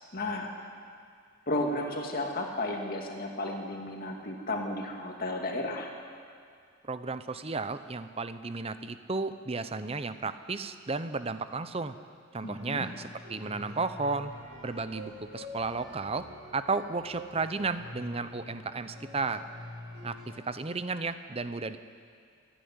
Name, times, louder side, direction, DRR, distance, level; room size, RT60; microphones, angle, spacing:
voice 1, 0.1-0.5 1.5-5.9 12.4-12.9, left 1 dB, 45° left, 1 dB, 2.3 m, -33 dB
voice 2, 6.8-12.0 12.3-14.3 14.6-16.3 16.5-19.5 20.0-21.8, right 3 dB, 25° right, 11 dB, 0.7 m, -33 dB
sound 1, 12.4-20.4, left 1 dB, 55° right, 6.6 m, -46 dB
26.5 x 10.5 x 9.7 m, 2.2 s
head